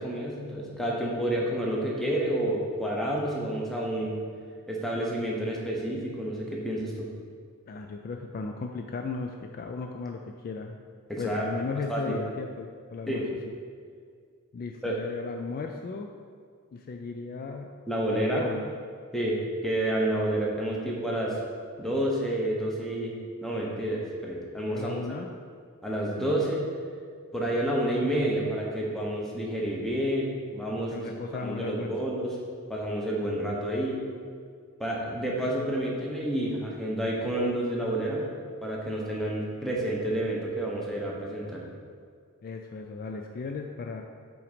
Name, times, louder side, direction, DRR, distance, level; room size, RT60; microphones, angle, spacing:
voice 1, 0.0-4.2 4.7-7.1 11.1-11.5 11.9-12.1 13.1-13.2 14.8-15.0 17.9-18.4 19.1-21.4 21.8-23.1 23.4-25.0 25.8-26.6 27.3-31.1 31.4-32.3 32.7-34.0 34.8-38.3 38.6-41.6, right 1 dB, ahead, -3 dB, 0.9 m, -29 dB
voice 2, 7.7-10.8 11.2-13.5 14.5-16.1 16.7-17.7 18.0-18.7 24.7-25.3 30.9-31.9 42.4-44.0, left 4 dB, 40° left, 3 dB, 0.3 m, -36 dB
5.7 x 3.9 x 5.1 m, 2.1 s
head